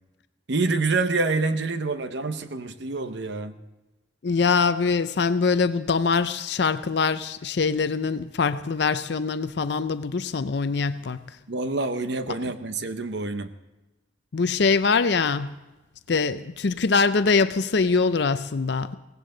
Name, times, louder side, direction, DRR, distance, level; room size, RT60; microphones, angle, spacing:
voice 1, 0.5-3.5 11.5-13.5, right 3 dB, 60° right, 0.8 m, -27 dB
voice 2, 4.2-11.2 14.3-15.5 16.1-19.0, left 4 dB, 60° left, 0.5 m, -23 dB
17.5 x 17.0 x 3.9 m
head